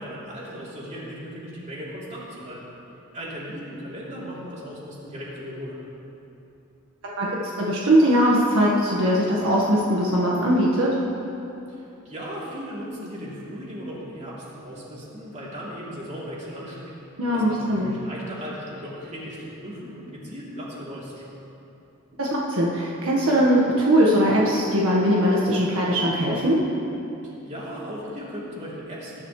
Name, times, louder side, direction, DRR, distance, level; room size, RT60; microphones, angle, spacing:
voice 1, 0.0-2.7 3.1-5.8 11.7-16.9 17.3-21.2 27.2-29.2, equal, 35° right, -6 dB, 3.2 m, -37 dB
voice 2, 7.0-11.0 17.2-17.9 22.2-26.6, equal, 70° right, -4 dB, 1.6 m, -20 dB
20.0 x 11.5 x 3.3 m, 2.9 s
head